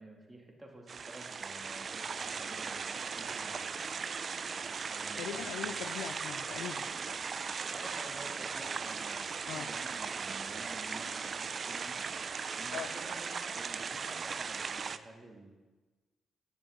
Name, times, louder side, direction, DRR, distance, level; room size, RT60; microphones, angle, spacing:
voice 1, 0.0-3.7 4.8-5.8 7.7-12.1 12.5-15.5, right 2 dB, 25° right, 0 dB, 2.5 m, -50 dB
sound 1, 0.9-15.0, right 5 dB, 50° right, 0.4 m, -38 dB
voice 2, 5.2-6.9 9.5-9.7 12.7-12.9, left 10 dB, 75° left, 11 dB, 0.4 m, -41 dB
10.0 x 9.7 x 3.8 m, 1.3 s
hypercardioid pair, 40°, 0 cm